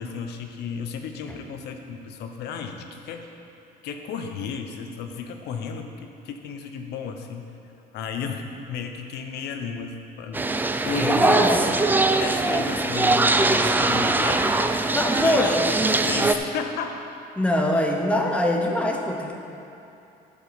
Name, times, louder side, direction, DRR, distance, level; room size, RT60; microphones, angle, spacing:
voice 1, 0.0-3.3 3.8-7.5 7.9-10.5 10.8-11.5 11.9-14.4 15.2-17.0, left 6 dB, 75° left, 5 dB, 0.9 m, -33 dB
sound 1, 10.3-16.3, right 2 dB, 10° right, 0.4 m, -21 dB
voice 2, 11.2-11.6 14.9-15.7 17.4-19.4, left 1 dB, 5° left, 1 dB, 1.0 m, -23 dB
14.5 x 5.2 x 5.1 m, 2.8 s
cardioid pair, 110°, 17 cm